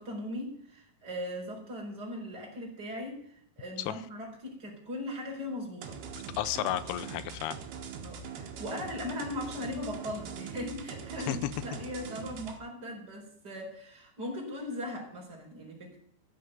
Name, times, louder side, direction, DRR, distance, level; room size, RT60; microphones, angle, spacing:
voice 1, 0.0-6.0 8.0-16.0, left 1 dB, 25° right, -1 dB, 4.8 m, -39 dB
sound 1, 5.8-12.6, right 6 dB, 75° right, 3.3 m, -42 dB
voice 2, 6.4-7.6 11.3-11.5, left 13 dB, 85° left, 13 dB, 2.7 m, -32 dB
15.0 x 6.7 x 9.2 m, 0.67 s
omnidirectional pair, 4.4 m